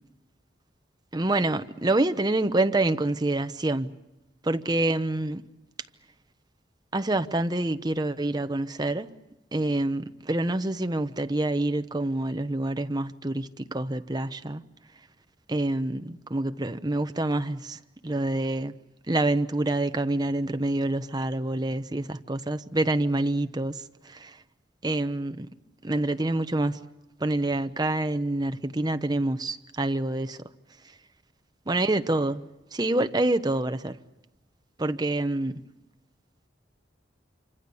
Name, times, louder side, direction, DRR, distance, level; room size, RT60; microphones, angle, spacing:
voice 1, 1.1-3.9 4.4-5.4 6.9-9.1 9.5-14.6 15.5-17.8 18.0-18.7 19.1-24.4 24.8-25.5 25.8-26.8 27.2-30.4 31.7-32.5 32.7-34.0 34.8-35.5, right 2 dB, 20° right, 0.9 m, -27 dB
27.0 x 25.5 x 7.0 m
head